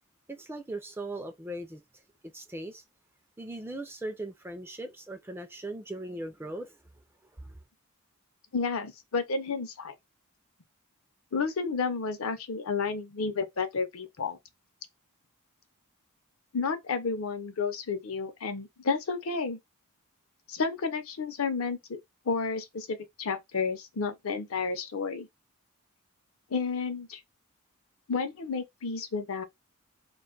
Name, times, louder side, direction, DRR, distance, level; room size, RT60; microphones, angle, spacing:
voice 1, 0.3-1.8 2.3-2.8 3.4-6.8 7.4-7.6, right 1 dB, 10° right, 0.3 m, -39 dB
voice 2, 8.5-9.9 11.3-14.4 16.5-19.6 20.5-22.0 22.3-25.3 26.5-27.2 28.1-29.4, left 4 dB, 65° left, 0.6 m, -31 dB
2.4 x 2.2 x 3.8 m
head